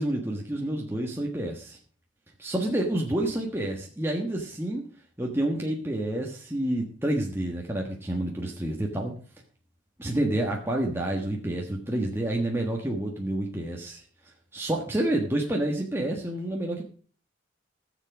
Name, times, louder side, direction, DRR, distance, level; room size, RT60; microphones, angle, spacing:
voice 1, 0.0-1.8 2.4-4.8 5.2-9.1 10.0-14.0 14.5-16.8, right 1 dB, 10° right, -1 dB, 1.3 m, -29 dB
16.0 x 7.1 x 5.0 m, 0.42 s
head